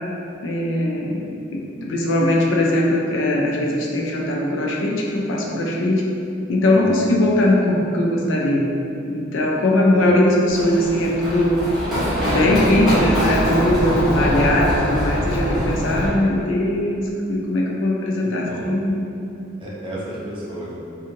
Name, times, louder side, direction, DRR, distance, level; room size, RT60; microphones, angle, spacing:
voice 1, 0.4-6.0 6.5-8.7 9.1-11.6 12.3-19.0, left 1 dB, 85° left, -1 dB, 0.4 m, -20 dB
Run, 10.5-16.1, equal, ahead, 0.9 m, -23 dB
voice 2, 18.2-18.7 19.6-20.7, equal, 25° right, -6 dB, 0.5 m, -34 dB
3.0 x 2.3 x 2.6 m, 2.7 s
head